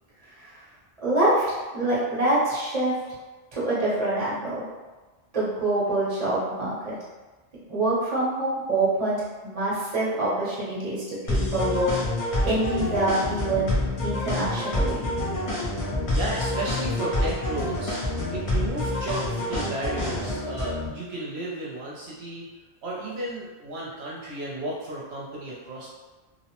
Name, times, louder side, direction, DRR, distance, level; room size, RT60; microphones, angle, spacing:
voice 1, 1.0-3.0 3.5-4.6 5.3-6.9 7.7-11.9 12.4-13.7 14.0-15.1, right 2 dB, 35° right, -7 dB, 0.8 m, -25 dB
sound 1, 11.3-20.9, left 1 dB, 40° left, 0.6 m, -27 dB
voice 2, 16.1-18.0 18.3-22.5 22.8-25.9, right 2 dB, 75° right, -5 dB, 0.8 m, -33 dB
2.7 x 2.0 x 2.8 m, 1.3 s
omnidirectional pair, 1.1 m